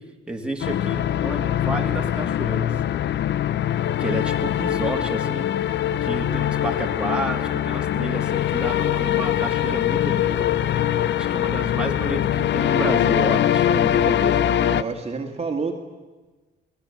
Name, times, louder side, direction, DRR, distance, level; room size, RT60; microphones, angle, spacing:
voice 1, 0.3-2.7 4.0-5.4 6.0-10.7 11.1-14.4, right 1 dB, 5° right, 1 dB, 3.0 m, -30 dB
sound 1, 0.6-14.8, left 11 dB, 65° left, 0.7 m, -22 dB
voice 2, 14.4-15.7, right 4 dB, 30° right, 3 dB, 2.3 m, -29 dB
22.0 x 17.5 x 8.6 m, 1.3 s
cardioid pair, 90°, 20 cm